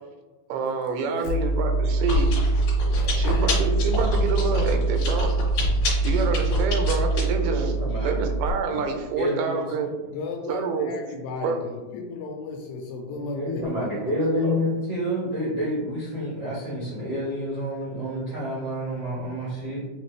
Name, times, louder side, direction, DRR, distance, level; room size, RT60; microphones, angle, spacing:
voice 1, 0.5-2.3 3.1-5.3 6.0-7.8 8.0-9.9 10.5-10.9 11.4-11.6 14.4-14.6, right 4 dB, 90° right, 5 dB, 2.6 m, -27 dB
Chewing mastication, 1.3-8.5, right 2 dB, 55° left, 2.3 m, -23 dB
voice 2, 2.8-3.5 10.1-14.4, left 3 dB, 80° left, 1 dB, 2.2 m, -36 dB
voice 3, 7.4-8.1 8.7-8.8 9.2-9.6 13.2-19.8, equal, 75° right, -9 dB, 1.1 m, -28 dB
6.6 x 2.5 x 3.2 m, 1.2 s
omnidirectional pair, 4.3 m